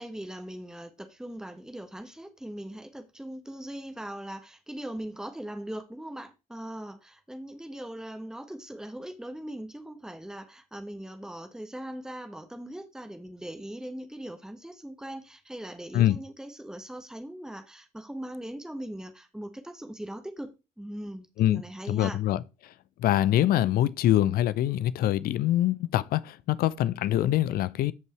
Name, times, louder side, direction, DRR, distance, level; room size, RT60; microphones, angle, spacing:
voice 1, 0.0-22.2, right 1 dB, 5° right, 1.4 m, -40 dB
voice 2, 21.9-22.4 23.0-27.9, left 13 dB, 50° left, 0.5 m, -24 dB
14.5 x 5.3 x 3.1 m
figure-of-eight pair, 50°, 19 cm